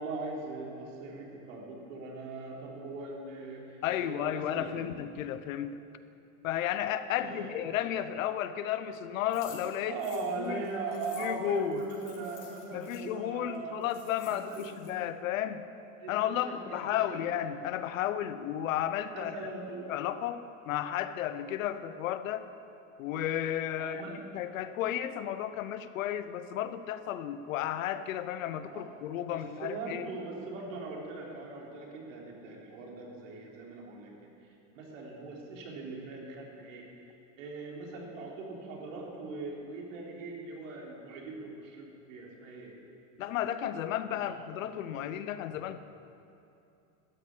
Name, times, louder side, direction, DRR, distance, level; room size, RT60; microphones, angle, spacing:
voice 1, 0.0-4.9 7.2-7.6 9.9-13.8 14.3-14.7 16.0-16.6 16.9-17.2 19.1-19.9 23.8-24.2 28.7-28.9 29.3-34.3 34.7-36.9 37.4-42.8 44.1-44.3, right 3 dB, 75° right, -2 dB, 3.6 m, -40 dB
voice 2, 3.8-5.8 6.4-10.0 10.4-10.6 11.2-11.8 12.7-15.7 16.1-19.3 19.9-22.5 23.0-30.1 43.2-45.8, left 11 dB, 80° left, 12 dB, 0.9 m, -33 dB
sound 1, 9.3-13.0 13.5-13.6 13.8-14.9, left 7 dB, 55° left, 3.4 m, -53 dB
13.0 x 10.0 x 8.6 m, 2.7 s
supercardioid pair, 180°, 40 cm